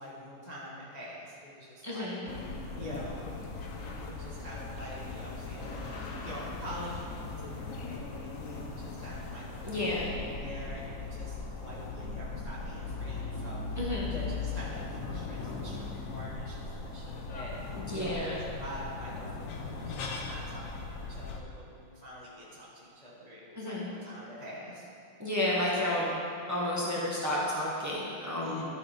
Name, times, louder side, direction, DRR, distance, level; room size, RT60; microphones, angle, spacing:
voice 1, 0.0-2.2 2.8-3.2 3.8-9.5 9.7-13.8 14.0-24.9 28.3-28.7, left 1 dB, 35° left, -7 dB, 0.7 m, -45 dB
voice 2, 1.8-2.2 9.6-10.1 13.8-14.1 17.7-18.4 23.5-23.9 25.2-26.1 26.5-28.5, left 1 dB, 15° right, -6 dB, 0.5 m, -31 dB
sound 1, 2.3-21.4, left 4 dB, 80° left, 0.7 m, -39 dB
12.0 x 4.2 x 4.9 m, 2.5 s
omnidirectional pair, 2.4 m